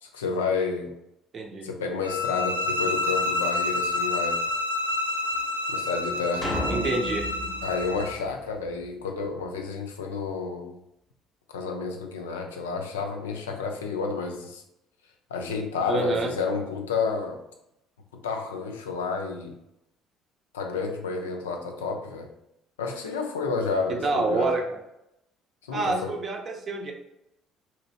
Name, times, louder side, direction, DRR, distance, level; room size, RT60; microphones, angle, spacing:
voice 1, 0.0-0.9 1.6-4.4 5.7-6.5 7.6-10.7 11.5-14.6 15.3-17.4 18.2-19.5 20.5-22.3 22.8-24.5 25.7-26.1, left 4 dB, 75° left, 4 dB, 0.3 m, -30 dB
voice 2, 1.3-1.7 6.7-7.3 15.9-16.3 24.0-24.8 25.7-26.9, right 3 dB, 35° right, 3 dB, 0.6 m, -27 dB
sound 1, 2.0-8.2, left 2 dB, 90° right, 0.3 m, -28 dB
sound 2, 6.4-8.9, left 1 dB, 20° left, 0.7 m, -33 dB
3.0 x 2.8 x 2.7 m, 0.84 s
figure-of-eight pair, 55°, 0 cm